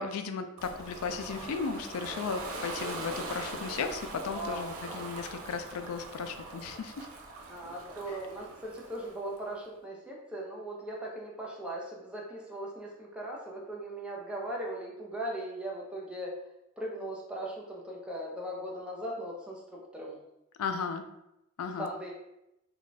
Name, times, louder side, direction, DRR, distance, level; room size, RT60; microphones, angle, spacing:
voice 1, 0.0-7.1 20.6-21.0 21.6-21.9, left 5 dB, 85° left, 7 dB, 0.3 m, -35 dB
Ocean, 0.6-9.4, right 2 dB, 75° right, 0.5 m, -42 dB
voice 2, 4.2-4.9 7.5-16.4 16.8-20.2 21.8-22.1, right 1 dB, 5° right, -3 dB, 0.5 m, -39 dB
2.3 x 2.3 x 3.9 m, 0.88 s
head